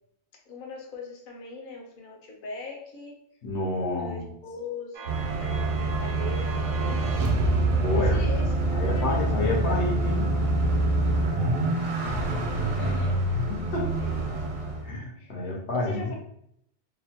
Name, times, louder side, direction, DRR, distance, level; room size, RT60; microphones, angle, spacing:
voice 1, 0.5-3.2 4.0-7.1 7.9-10.5 12.7-13.3 13.8-14.4 15.2-16.1, left 3 dB, 55° left, -1 dB, 0.7 m, -41 dB
voice 2, 3.4-4.3 7.8-8.2 8.7-10.3 13.4-13.9 14.8-16.2, left 2 dB, 75° left, -1 dB, 1.0 m, -29 dB
sound 1, 5.0-9.6, equal, 60° right, 0.6 m, -31 dB
sound 2, 5.1-14.9, right 2 dB, 80° right, 1.0 m, -26 dB
2.8 x 2.0 x 2.8 m, 0.71 s
omnidirectional pair, 1.2 m